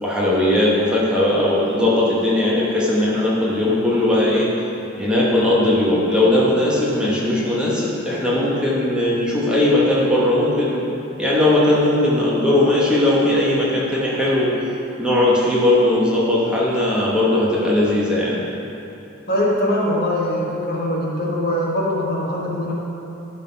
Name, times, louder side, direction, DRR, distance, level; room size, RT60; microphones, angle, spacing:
voice 1, 0.0-4.5 4.9-10.9 11.2-14.5 15.0-18.4, left 1 dB, 5° right, -7 dB, 1.1 m, -18 dB
voice 2, 19.3-22.7, left 1 dB, 45° left, -4 dB, 1.3 m, -22 dB
11.5 x 4.1 x 5.5 m, 2.9 s
head